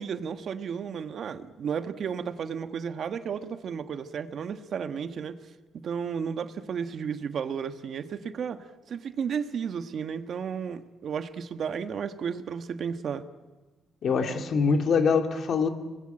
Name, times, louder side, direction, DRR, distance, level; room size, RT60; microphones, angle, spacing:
voice 1, 0.0-5.4 5.7-13.2, right 7 dB, 60° right, 9 dB, 1.3 m, -33 dB
voice 2, 14.0-15.7, left 5 dB, 60° left, 5 dB, 2.4 m, -24 dB
25.0 x 20.0 x 8.9 m, 1.2 s
cardioid pair, 90°, 0 cm